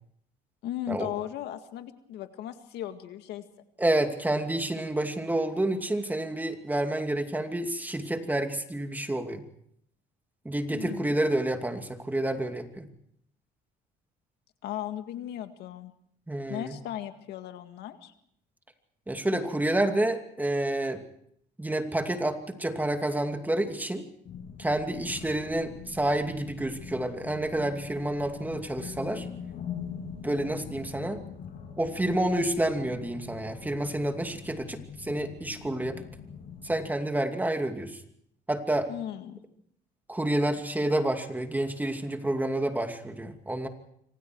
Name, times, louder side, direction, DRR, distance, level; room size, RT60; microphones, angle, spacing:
voice 1, 0.6-3.4 10.7-11.1 14.6-15.9 16.5-18.1 38.9-39.4, left 11 dB, 80° left, 8 dB, 2.0 m, -37 dB
voice 2, 3.8-9.4 10.4-12.9 16.3-16.8 19.1-21.0 21.6-24.1 24.6-29.3 30.2-31.2 31.8-36.0 36.6-38.0 38.5-38.9 40.1-43.7, right 1 dB, 10° right, 5 dB, 2.6 m, -29 dB
sound 1, 24.3-36.9, left 7 dB, 60° left, 6.6 m, -43 dB
26.5 x 25.5 x 4.7 m, 0.70 s
cardioid pair, 110°, 17 cm